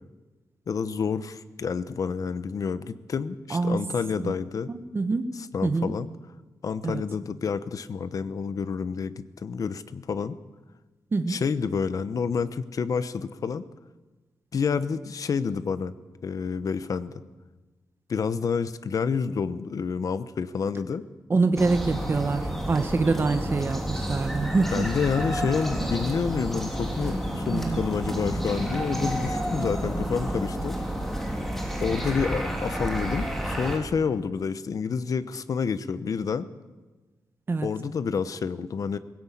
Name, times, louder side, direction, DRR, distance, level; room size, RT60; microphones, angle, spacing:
voice 1, 0.7-4.7 5.3-6.1 6.6-10.4 11.3-13.6 14.5-15.9 16.2-17.2 18.1-21.1 24.7-30.8 31.8-36.5 37.6-39.0, left 6 dB, 55° left, 13 dB, 1.0 m, -29 dB
voice 2, 3.5-3.9 4.2-4.3 4.7-5.3 5.6-5.9 6.8-7.0 11.1-11.4 21.3-24.8 27.5-27.9 37.5-37.7, right 3 dB, 35° right, 7 dB, 1.1 m, -25 dB
sound 1, 21.6-33.8, equal, 5° left, 3.5 m, -30 dB
20.5 x 17.0 x 8.5 m, 1.2 s
wide cardioid pair, 145°, 7 cm